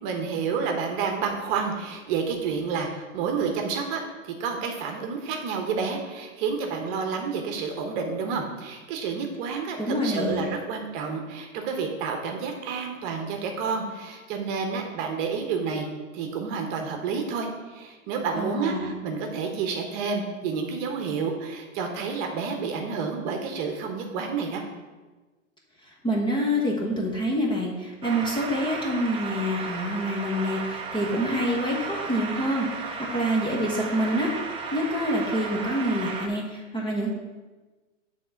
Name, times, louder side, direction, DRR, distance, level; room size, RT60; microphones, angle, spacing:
voice 1, 0.0-15.9 16.1-24.6, right 5 dB, 40° right, 3 dB, 1.1 m, -29 dB
voice 2, 9.8-10.5 18.3-18.9 26.0-34.3 34.7-37.1, equal, 10° left, -2 dB, 1.0 m, -27 dB
sound 1, 28.0-36.3, right 4 dB, 15° right, 0.7 m, -34 dB
6.8 x 3.7 x 6.3 m, 1.3 s
hypercardioid pair, 130°, 39 cm